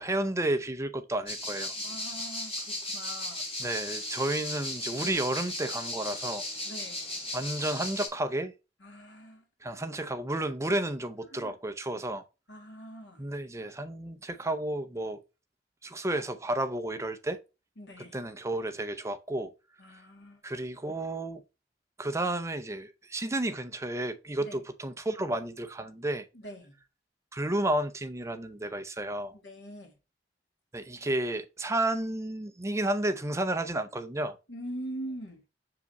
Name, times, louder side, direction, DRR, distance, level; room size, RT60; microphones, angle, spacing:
voice 1, 0.0-1.8 3.6-6.4 7.3-8.5 9.6-12.2 13.2-15.2 15.8-17.4 18.1-19.5 19.9-20.0 20.4-21.4 22.0-26.3 27.3-29.3 30.7-34.4, right 1 dB, 15° right, 0.6 m, -32 dB
sound 1, 1.3-8.1, left 1 dB, 35° left, 3.7 m, -36 dB
voice 2, 1.8-3.4 5.0-5.2 6.6-7.0 8.8-9.5 11.3-11.6 12.5-13.3 17.8-18.2 19.8-20.4 24.4-24.6 26.3-26.8 29.3-29.9 34.5-35.4, right 1 dB, 85° left, 2.4 m, -43 dB
6.8 x 4.9 x 3.0 m
head